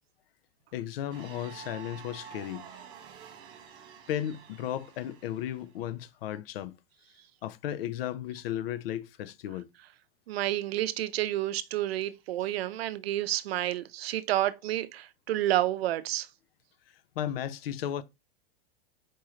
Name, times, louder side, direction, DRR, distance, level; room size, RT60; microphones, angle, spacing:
voice 1, 0.7-2.7 4.1-6.8 7.4-9.7 17.2-18.0, left 11 dB, 70° left, 0.5 m, -35 dB
sound 1, 1.1-5.8, right 7 dB, 15° right, 0.5 m, -49 dB
voice 2, 10.3-16.3, right 14 dB, 75° right, 0.6 m, -30 dB
4.5 x 3.1 x 3.6 m
supercardioid pair, 170°, 31 cm